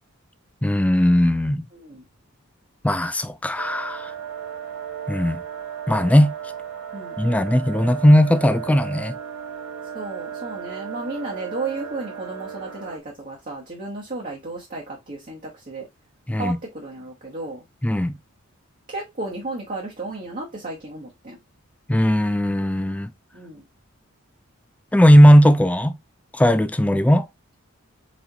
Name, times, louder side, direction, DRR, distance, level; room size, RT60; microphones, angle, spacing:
voice 1, 0.6-1.7 2.8-4.1 5.1-5.4 5.9-6.3 7.2-9.2 16.3-16.6 17.8-18.2 21.9-23.1 24.9-25.9 26.3-27.3, equal, 5° left, 0.3 m, -17 dB
voice 2, 1.7-2.0 6.9-7.6 9.9-15.9 16.3-17.6 18.9-21.4 23.3-23.7, right 2 dB, 40° right, 1.1 m, -34 dB
sound 1, 3.6-13.0, right 8 dB, 80° right, 0.9 m, -35 dB
4.2 x 4.2 x 2.9 m
head